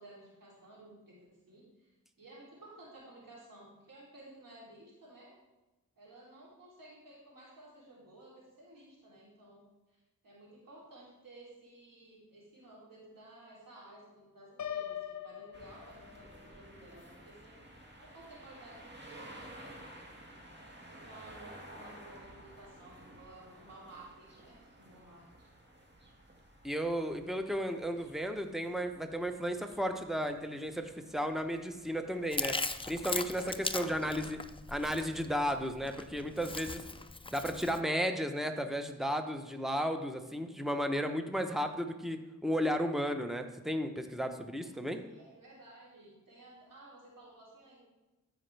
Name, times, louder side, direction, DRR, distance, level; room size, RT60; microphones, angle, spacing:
voice 1, 0.0-5.3 6.0-9.6 9.9-17.6 18.0-19.7 20.8-25.5 26.0-26.1 33.7-34.2 44.7-47.8, right 1 dB, 90° right, -6 dB, 3.2 m, -55 dB
Piano, 14.6-16.5, left 10 dB, 60° left, 0.7 m, -41 dB
sound 1, 15.5-33.4, right 1 dB, 35° right, 1.9 m, -54 dB
voice 2, 26.6-32.6 32.9-34.4 34.7-36.8 37.3-45.0, equal, ahead, 6 dB, 0.9 m, -34 dB
Chewing mastication, 32.3-37.8, left 3 dB, 15° left, 0.5 m, -39 dB
13.5 x 5.1 x 3.4 m, 1.1 s
cardioid pair, 45°, 32 cm